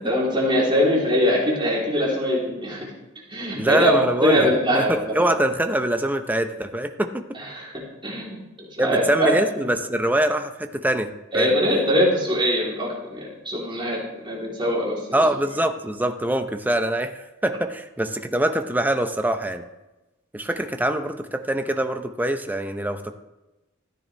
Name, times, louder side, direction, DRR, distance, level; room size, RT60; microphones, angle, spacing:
voice 1, 0.0-2.8 3.3-4.9 7.5-7.7 8.0-8.4 8.8-9.3 11.3-14.0 14.2-15.0, equal, 25° right, -5 dB, 3.4 m, -22 dB
voice 2, 3.6-4.5 4.7-7.2 8.8-11.6 15.1-19.6 20.3-23.1, right 1 dB, 10° right, 7 dB, 0.6 m, -24 dB
14.0 x 9.3 x 3.4 m, 1.0 s
head